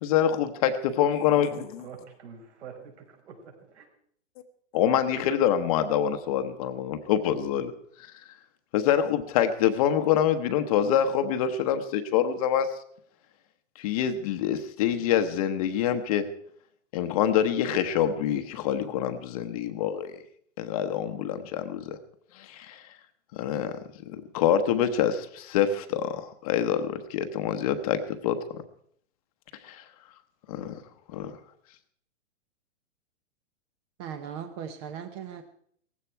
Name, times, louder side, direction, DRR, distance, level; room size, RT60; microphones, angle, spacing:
voice 1, 0.0-1.8 4.7-7.7 8.0-8.1 8.7-12.8 13.8-16.2 16.9-20.2 20.6-22.0 22.3-22.8 23.3-23.8 24.1-28.4 29.6-29.8 30.5-30.8 31.1-31.4, left 9 dB, 30° left, 0.9 m, -26 dB
voice 2, 1.3-3.9, right 6 dB, 60° right, 5.6 m, -46 dB
voice 3, 34.0-35.4, right 8 dB, 20° right, 0.7 m, -38 dB
18.0 x 15.5 x 4.6 m
hypercardioid pair, 165°, 37 cm